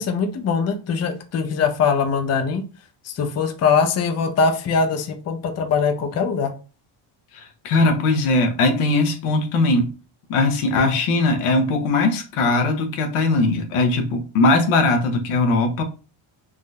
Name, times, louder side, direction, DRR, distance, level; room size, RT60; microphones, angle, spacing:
voice 1, 0.0-2.6 3.0-6.5, left 5 dB, 35° left, 0.5 m, -22 dB
voice 2, 7.3-9.9 10.3-15.8, left 2 dB, 85° left, 0.8 m, -20 dB
3.5 x 2.6 x 2.2 m
cardioid pair, 100°, 49 cm